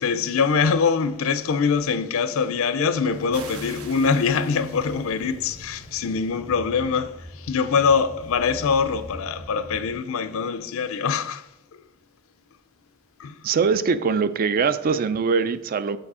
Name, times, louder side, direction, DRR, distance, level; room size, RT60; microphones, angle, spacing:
voice 1, 0.0-11.4 13.2-13.4, left 5 dB, 65° left, 0.4 m, -23 dB
sound 1, 3.1-9.9, equal, 60° right, 2.0 m, -42 dB
sound 2, 3.3-5.9, right 5 dB, 75° right, 0.8 m, -44 dB
voice 2, 13.4-16.0, right 5 dB, 40° right, 0.3 m, -22 dB
6.1 x 4.8 x 4.8 m
head